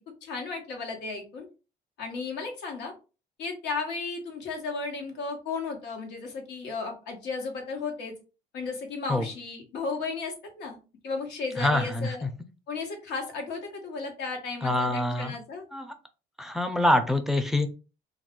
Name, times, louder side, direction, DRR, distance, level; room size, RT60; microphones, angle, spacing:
voice 1, 0.2-1.5 2.0-2.9 3.4-8.1 8.5-10.8 11.0-12.3 12.7-15.6, left 4 dB, 85° left, 2 dB, 1.1 m, -34 dB
voice 2, 11.6-12.3 14.6-15.3 15.7-15.8 16.4-17.7, left 1 dB, ahead, 8 dB, 0.4 m, -25 dB
2.3 x 2.3 x 3.6 m, 0.32 s
cardioid pair, 110°, 17 cm